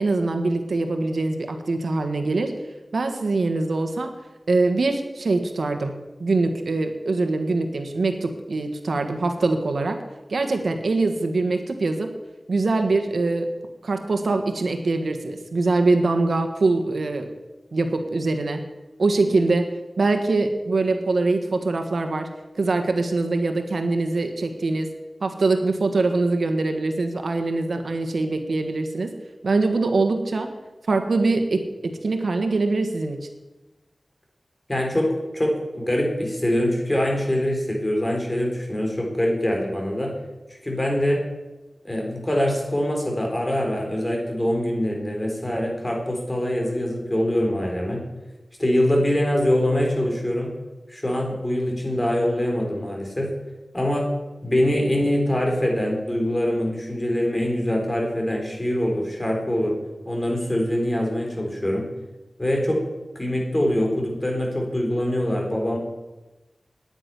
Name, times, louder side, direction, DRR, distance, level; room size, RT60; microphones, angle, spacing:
voice 1, 0.0-2.5 2.9-4.1 4.5-10.0 10.3-12.1 12.5-13.5 13.8-17.3 17.7-18.6 19.0-19.7 20.0-22.3 22.6-24.9 25.2-29.1 29.4-30.5 30.9-33.3, right 3 dB, 85° right, 6 dB, 1.5 m, -23 dB
voice 2, 34.7-35.1 35.3-40.1 40.5-41.2 41.8-48.0 48.6-50.6 50.9-53.3 53.7-54.1 54.4-59.7 60.1-61.9 62.4-62.8 63.2-65.8, left 1 dB, 20° left, 0 dB, 4.0 m, -24 dB
9.9 x 9.8 x 9.9 m, 1.1 s
wide cardioid pair, 85°, 0 cm